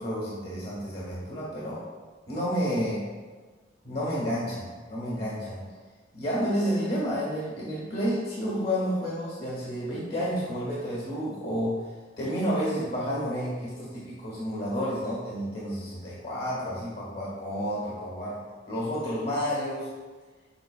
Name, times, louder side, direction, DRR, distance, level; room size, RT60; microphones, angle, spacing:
voice 1, 0.0-1.8 2.3-3.0 3.8-5.7 6.1-11.8 12.2-18.4 18.7-19.9, equal, 55° left, -6 dB, 1.7 m, -30 dB
7.9 x 5.3 x 2.3 m, 1.4 s
head